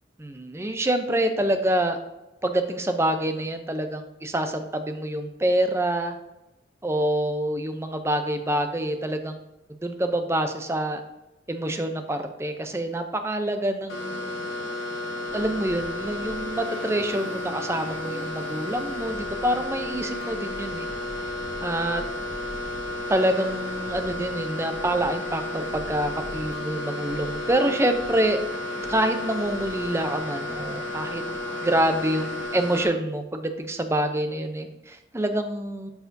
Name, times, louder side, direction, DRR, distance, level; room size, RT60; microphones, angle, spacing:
voice 1, 0.2-2.0 2.4-6.2 6.8-9.4 9.8-11.0 11.5-14.4 15.3-20.9 21.6-22.0 23.1-28.4 28.9-31.2 31.6-35.9, right 1 dB, 15° right, 7 dB, 0.5 m, -26 dB
sound 1, 13.9-32.9, left 1 dB, 80° left, 1.7 m, -33 dB
Traffic noise roadway noise, 15.3-32.5, equal, 30° left, 2.5 m, -44 dB
12.0 x 4.7 x 2.6 m, 0.95 s
head